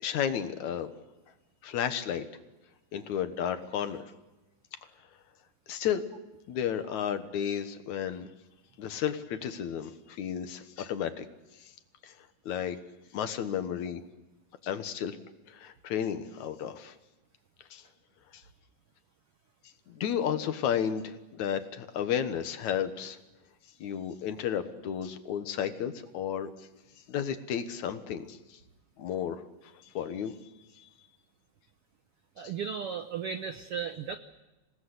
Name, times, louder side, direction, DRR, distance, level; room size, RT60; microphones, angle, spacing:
voice 1, 0.0-0.9 1.6-2.2 2.9-4.0 5.7-6.0 6.5-8.3 8.8-11.3 12.0-12.1 12.5-12.8 13.1-14.0 14.6-15.2 15.5-16.9 17.7-17.8 18.3-18.4 19.9-23.2 23.8-26.5 27.1-28.6 29.0-29.4 29.9-30.3 30.8-30.9 32.4-32.5, left 9 dB, 65° left, 10 dB, 2.5 m, -32 dB
voice 2, 32.4-34.2, right 7 dB, 80° right, 9 dB, 1.3 m, -35 dB
27.0 x 18.5 x 8.1 m, 1.1 s
omnidirectional pair, 3.9 m